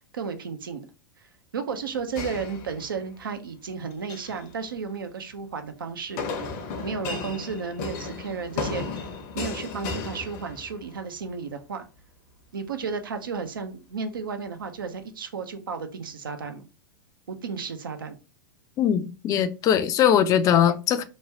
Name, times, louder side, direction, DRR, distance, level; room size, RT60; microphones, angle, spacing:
voice 1, 0.1-0.8 1.5-6.4 6.8-9.0 9.3-11.9 12.5-16.7 17.3-18.2, right 5 dB, 85° right, 0.5 m, -33 dB
sound 1, 2.2-3.2 3.9-4.4 6.2-11.0, left 4 dB, 50° left, 0.7 m, -34 dB
voice 2, 18.8-21.0, left 9 dB, 30° left, 0.3 m, -21 dB
3.1 x 2.2 x 2.7 m
hypercardioid pair, 105°, 11 cm